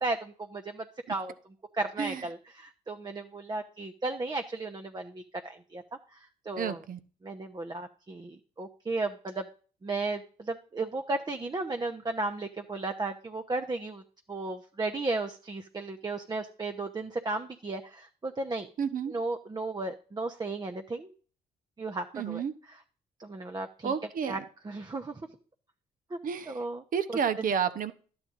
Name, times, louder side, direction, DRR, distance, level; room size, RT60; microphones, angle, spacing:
voice 1, 0.0-1.3 1.7-5.8 6.1-6.8 7.2-9.5 9.8-14.0 14.3-18.7 19.1-21.1 21.8-22.4 22.7-22.8 23.2-23.9 24.3-24.4 24.6-25.2 26.1-26.2 26.5-26.8 27.1-27.5, right 3 dB, 25° right, 6 dB, 0.9 m, -34 dB
voice 2, 6.6-7.0 18.8-19.1 22.1-22.5 23.8-24.4 26.2-26.6 26.9-27.9, right 7 dB, 55° right, 14 dB, 0.9 m, -30 dB
11.5 x 8.7 x 3.7 m, 0.41 s
supercardioid pair, 60°, 17 cm